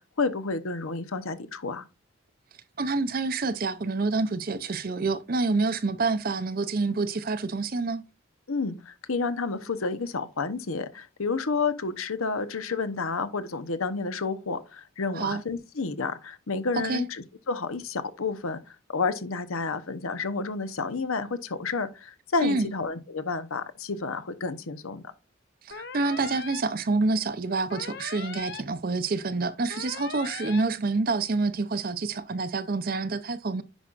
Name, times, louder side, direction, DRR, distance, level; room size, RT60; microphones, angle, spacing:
voice 1, 0.0-1.8 8.5-25.1, left 4 dB, 85° left, 0.9 m, -30 dB
voice 2, 2.8-8.0 15.1-15.4 16.7-17.1 22.4-22.7 25.6-33.6, right 3 dB, 45° right, 0.5 m, -27 dB
sound 1, 25.7-26.6 27.7-28.6 29.7-30.6, left 5 dB, 50° left, 0.7 m, -39 dB
10.0 x 5.5 x 2.5 m
head